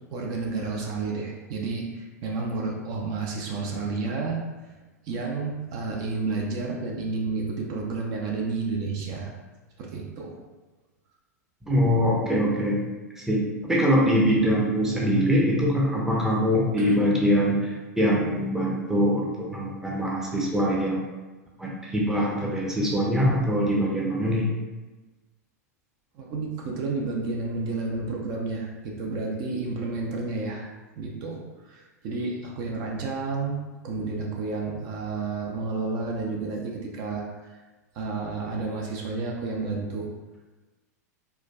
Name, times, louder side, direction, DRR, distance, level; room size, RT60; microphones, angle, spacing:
voice 1, 0.1-4.7 5.0-9.3 9.8-10.3 16.8-17.0 26.1-30.6 31.0-37.6 37.9-40.1, right 3 dB, 45° right, -1 dB, 0.6 m, -31 dB
voice 2, 11.6-12.8 13.2-21.0 21.6-24.5, equal, 5° right, -4 dB, 0.7 m, -23 dB
4.4 x 2.3 x 2.3 m, 1.2 s
hypercardioid pair, 100°, 9 cm